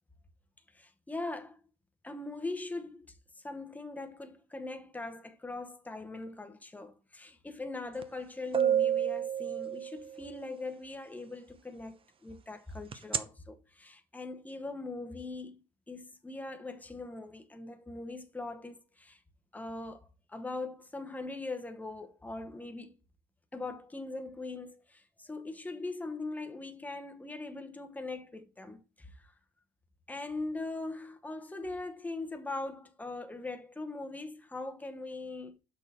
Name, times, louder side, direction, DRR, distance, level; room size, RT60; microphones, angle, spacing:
voice 1, 0.7-1.6 2.0-3.1 3.4-15.6 15.9-19.2 19.5-23.0 23.5-29.3 30.1-35.6, left 2 dB, 10° left, 0.9 m, -41 dB
sound 1, 8.0-8.1 8.5-10.3 12.9-13.2, right 9 dB, 30° right, 0.7 m, -29 dB
6.9 x 6.2 x 4.2 m
cardioid pair, 110°, 17 cm